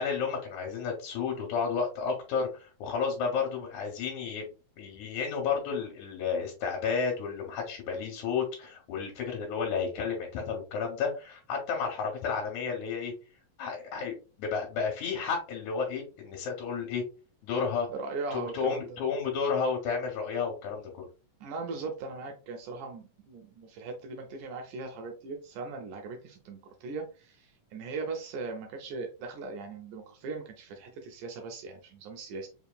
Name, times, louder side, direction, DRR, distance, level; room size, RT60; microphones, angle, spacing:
voice 1, 0.0-4.5 4.8-13.1 13.6-14.1 14.4-17.0 17.4-17.9 18.3-21.0, left 5 dB, 75° left, 0 dB, 2.2 m, -32 dB
voice 2, 17.9-18.9 21.4-32.5, right 3 dB, 80° right, 4 dB, 2.1 m, -39 dB
5.1 x 2.8 x 2.2 m, 0.33 s
omnidirectional pair, 3.6 m